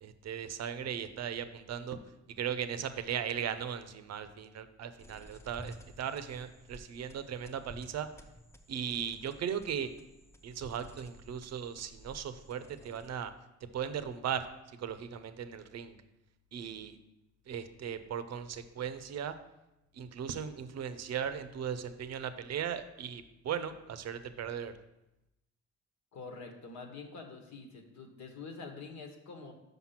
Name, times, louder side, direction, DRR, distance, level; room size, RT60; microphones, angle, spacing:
voice 1, 0.0-2.0 2.4-8.1 8.7-9.9 10.4-13.3 13.7-14.5 14.8-16.0 16.5-17.0 17.5-19.4 19.9-24.7, right 8 dB, 60° right, 11 dB, 0.7 m, -37 dB
sound 1, 5.0-13.4, equal, 10° left, 0.6 m, -53 dB
voice 2, 26.1-29.5, left 4 dB, 70° left, 3 dB, 1.3 m, -46 dB
6.0 x 5.3 x 5.8 m, 0.92 s
cardioid pair, 90°, 30 cm